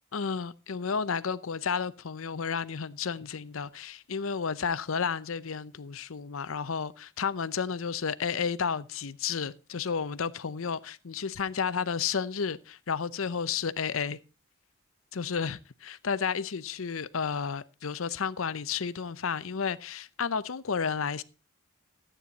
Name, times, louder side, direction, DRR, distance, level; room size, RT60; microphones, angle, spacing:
voice 1, 0.1-14.2 15.1-21.2, left 6 dB, 80° left, 0.7 m, -32 dB
14.0 x 9.0 x 4.1 m
head